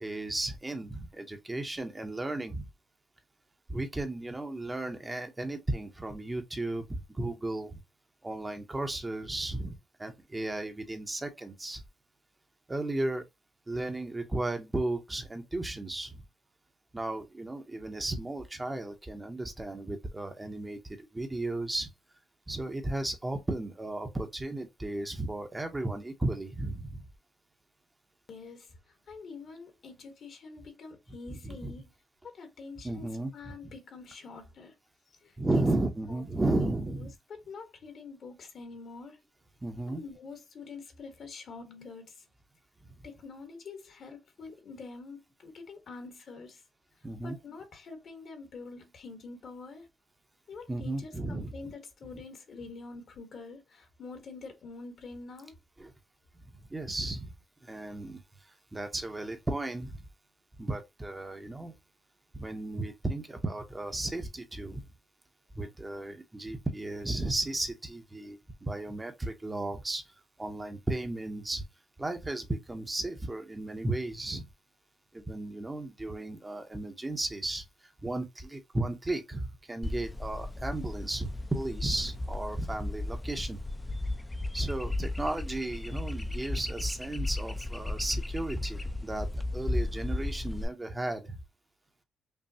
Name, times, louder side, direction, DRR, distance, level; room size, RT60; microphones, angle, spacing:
voice 1, 0.0-2.7 3.7-7.8 8.2-11.8 12.7-13.2 13.7-16.2 16.9-21.9 22.5-27.0 31.3-31.7 32.8-33.7 35.4-37.1 39.6-40.0 47.0-47.4 50.7-51.7 55.8-55.9 56.7-57.3 57.6-58.2 58.7-60.0 60.6-61.7 62.3-64.8 65.5-70.0 70.4-71.6 72.0-74.4 75.1-77.6 78.0-83.6 84.5-89.3 89.5-91.4, right 2 dB, 15° right, 0.8 m, -34 dB
voice 2, 28.3-28.7 29.1-31.9 32.3-34.7 35.2-35.6 36.1-36.2 36.5-36.7 37.0-39.2 39.9-42.1 43.0-46.6 47.2-49.9 50.5-55.5, left 4 dB, 55° left, 1.3 m, -46 dB
sound 1, 79.8-90.6, left 2 dB, 15° left, 0.5 m, -35 dB
5.4 x 2.3 x 2.8 m
cardioid pair, 90°, 0 cm